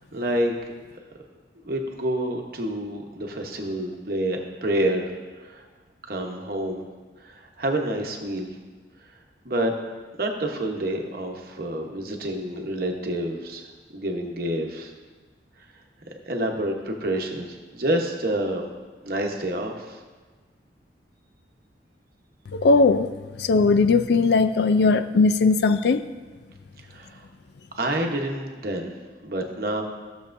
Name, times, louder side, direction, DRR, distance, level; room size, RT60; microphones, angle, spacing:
voice 1, 0.1-0.5 1.6-5.1 5.4-5.7 6.1-6.8 7.2-8.6 9.4-9.7 10.2-13.6 13.9-14.9 16.3-18.6 19.0-20.0 26.8-27.3 27.8-28.9 29.2-29.8, right 1 dB, 50° right, 2 dB, 1.0 m, -28 dB
voice 2, 22.5-26.0, left 4 dB, 65° left, 11 dB, 0.4 m, -19 dB
15.0 x 6.7 x 2.6 m, 1.4 s
head